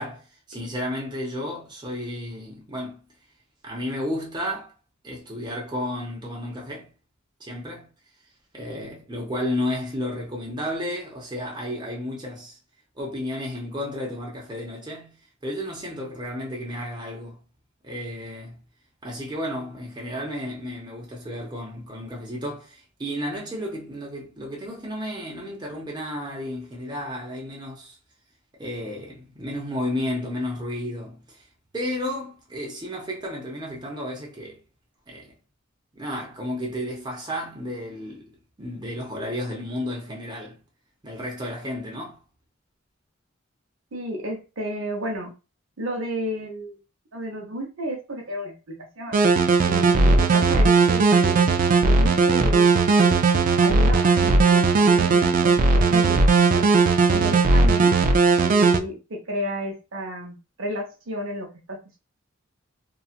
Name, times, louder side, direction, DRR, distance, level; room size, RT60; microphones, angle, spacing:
voice 1, 0.0-3.0 3.6-4.7 5.0-6.9 7.4-7.9 8.5-12.6 13.0-15.1 15.4-17.4 17.8-18.6 19.0-28.0 28.6-31.4 31.7-34.6 35.1-35.3 35.9-38.3 38.6-40.6 41.0-42.2, left 1 dB, 20° right, 0.8 m, -32 dB
voice 2, 43.9-45.3 45.8-46.8 47.1-49.2 49.7-51.5 51.8-53.3 53.6-56.7 57.1-58.0 58.4-62.0, equal, 75° right, 0.8 m, -32 dB
sound 1, 49.1-58.8, right 4 dB, 40° right, 0.3 m, -18 dB
2.8 x 2.4 x 2.4 m
head